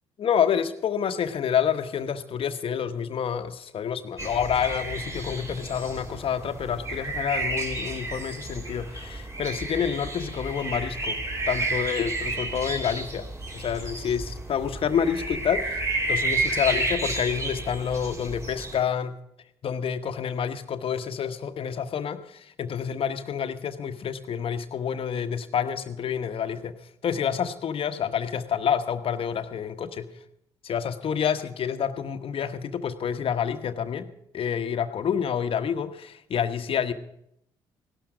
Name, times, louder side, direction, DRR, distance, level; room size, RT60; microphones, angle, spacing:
voice 1, 0.2-13.3 13.5-15.8 16.1-19.2 19.6-26.7 27.0-30.1 30.6-34.1 34.3-36.9, left 8 dB, 55° left, 9 dB, 1.3 m, -28 dB
sound 1, 4.2-18.8, right 2 dB, 25° right, 3.2 m, -31 dB
17.0 x 12.5 x 5.1 m, 0.74 s
hypercardioid pair, 50°, 11 cm